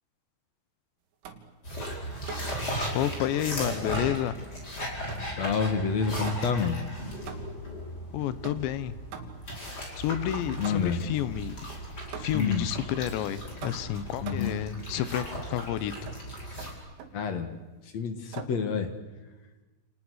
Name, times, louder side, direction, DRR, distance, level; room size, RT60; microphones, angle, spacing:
sound 1, 1.2-1.6 2.3-2.6 4.3-5.4 6.2-6.7 7.3-7.7 8.4-9.6 10.6-11.1 12.1-12.6 13.6-14.6 16.1-16.2 16.6-17.2 18.3-18.7, right 7 dB, 85° right, 4.6 m, -43 dB
sound 2, 1.6-16.7, equal, 20° left, 5.2 m, -37 dB
voice 1, 2.9-4.3 8.1-9.0 10.0-11.5 12.2-16.1, left 11 dB, 75° left, 14 dB, 3.2 m, -30 dB
voice 2, 5.4-6.8 10.6-11.0 12.3-12.7 14.2-14.5 17.1-17.5 17.9-18.9, left 6 dB, 55° left, 8 dB, 2.0 m, -28 dB
29.0 x 29.0 x 6.5 m, 1.2 s
omnidirectional pair, 5.4 m